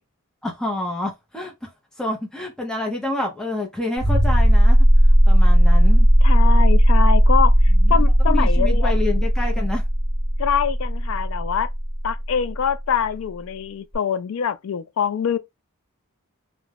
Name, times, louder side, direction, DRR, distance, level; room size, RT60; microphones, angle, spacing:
voice 1, 0.4-1.7 2.0-4.8 5.3-6.1 7.7-9.8, left 2 dB, 5° left, 0.5 m, -28 dB
sound 1, 4.0-12.4 13.9-14.0, equal, 40° left, 0.8 m, -15 dB
voice 2, 6.2-9.3 10.4-11.7 12.0-15.4, left 7 dB, 70° left, 0.3 m, -24 dB
2.3 x 2.1 x 3.2 m
head